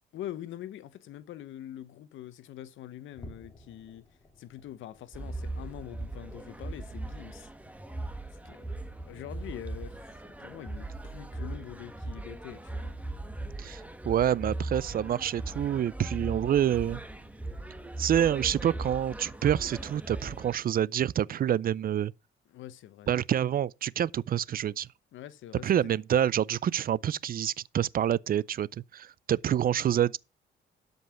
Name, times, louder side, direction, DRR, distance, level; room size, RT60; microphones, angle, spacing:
voice 1, 0.1-4.0 4.4-7.5 8.4-8.6 9.1-13.0 22.5-23.1 25.1-25.9, left 12 dB, 75° left, 0.8 m, -44 dB
sound 1, 3.1-9.8 10.2-10.4 10.9-11.0 11.6-11.7, equal, 20° left, 2.4 m, -56 dB
sound 2, 5.1-20.6, right 2 dB, 5° right, 1.5 m, -39 dB
voice 2, 13.6-17.0 18.0-22.1 23.1-24.9 25.6-28.7 28.9-30.2, right 10 dB, 45° right, 0.4 m, -27 dB
12.5 x 5.4 x 5.7 m
cardioid pair, 90°, 20 cm